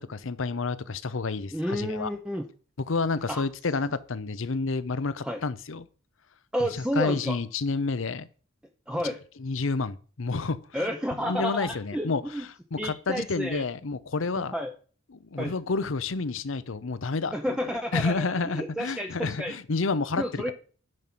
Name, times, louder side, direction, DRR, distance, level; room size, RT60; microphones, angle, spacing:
voice 1, 0.0-2.1 2.9-5.9 6.7-8.3 9.4-10.9 11.2-14.5 15.1-20.5, left 4 dB, 70° left, 0.7 m, -30 dB
voice 2, 1.5-2.5 3.3-3.4 5.2-5.4 6.5-7.4 8.9-9.2 10.7-12.4 12.8-13.6 14.4-14.7 15.4-15.5 17.3-19.6 20.2-20.5, equal, 5° right, 0.7 m, -31 dB
11.0 x 5.4 x 6.0 m
head